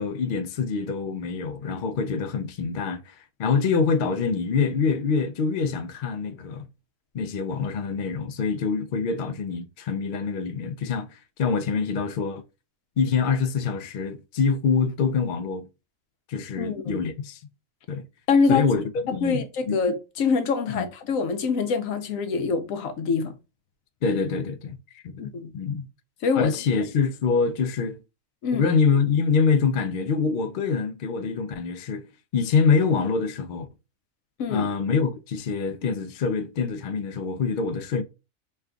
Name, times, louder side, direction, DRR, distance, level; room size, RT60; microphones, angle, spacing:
voice 1, 0.0-3.1 3.4-6.7 7.1-11.1 11.4-12.4 13.0-15.7 16.3-17.4 17.9-18.0 18.5-19.8 20.7-20.9 24.0-25.9 26.3-28.0 28.5-32.1 32.3-33.7 34.5-38.0, left 5 dB, 65° left, 0.5 m, -25 dB
voice 2, 16.6-17.1 18.3-18.7 19.2-23.3 25.2-25.5 26.2-26.6 28.4-28.7 34.4-34.7, left 4 dB, 80° left, 1.1 m, -25 dB
3.3 x 2.3 x 3.6 m
omnidirectional pair, 1.4 m